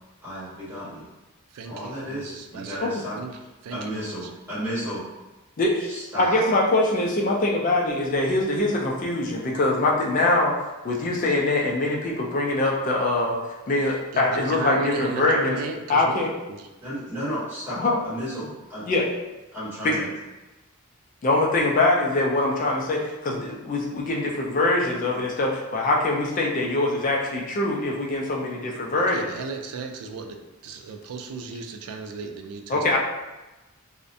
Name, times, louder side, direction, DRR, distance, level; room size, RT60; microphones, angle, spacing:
voice 1, 0.2-1.0 1.6-3.4 3.7-5.0 5.9-6.4 13.8-13.9 16.8-18.8 19.5-20.1, equal, 10° right, -12 dB, 1.3 m, -33 dB
voice 2, 1.5-2.9 3.2-3.3 3.6-4.2 14.1-16.7 29.1-33.0, right 4 dB, 80° right, 5 dB, 0.3 m, -35 dB
voice 3, 5.6-10.5 10.8-13.4 13.7-15.6 15.9-16.3 17.8-18.0 18.9-19.1 19.8-19.9 21.2-29.4 32.7-33.0, left 2 dB, 35° left, -1 dB, 0.3 m, -23 dB
2.5 x 2.1 x 2.6 m, 1.1 s
head